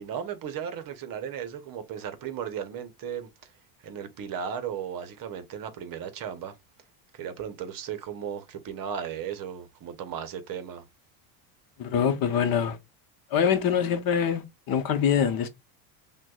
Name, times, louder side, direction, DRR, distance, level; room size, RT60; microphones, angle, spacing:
voice 1, 0.0-3.5 3.8-6.6 7.1-10.9, right 8 dB, 45° right, 0.8 m, -36 dB
voice 2, 11.8-12.8 13.3-15.5, left 8 dB, 45° left, 0.8 m, -24 dB
5.9 x 2.3 x 2.3 m
supercardioid pair, 110°, 50 cm